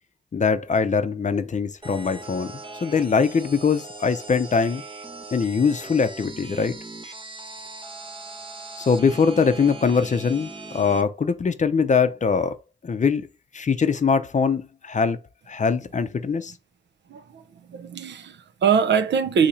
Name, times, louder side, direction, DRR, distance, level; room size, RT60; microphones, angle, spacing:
voice 1, 0.3-2.5 2.8-4.8 5.3-6.7 8.8-12.5 12.8-13.3 13.5-15.2 15.5-16.5, left 5 dB, 40° left, 0.6 m, -22 dB
sound 1, 1.8-11.0, right 2 dB, 25° right, 0.7 m, -39 dB
voice 2, 17.1-17.4 17.7-19.5, right 7 dB, 65° right, 0.5 m, -22 dB
2.8 x 2.7 x 4.3 m
supercardioid pair, 45°, 19 cm